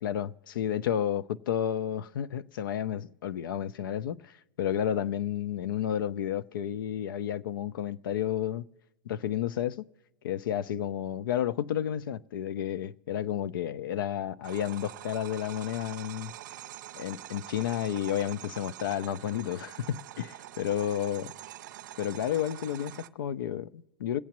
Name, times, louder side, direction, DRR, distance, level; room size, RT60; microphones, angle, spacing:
voice 1, 0.0-8.6 9.1-9.9 10.2-16.3 16.9-21.3 22.0-24.2, left 10 dB, 75° left, 0.5 m, -31 dB
sound 1, 14.4-23.1, right 14 dB, 60° right, 0.5 m, -45 dB
21.5 x 8.3 x 3.0 m
supercardioid pair, 160°, 11 cm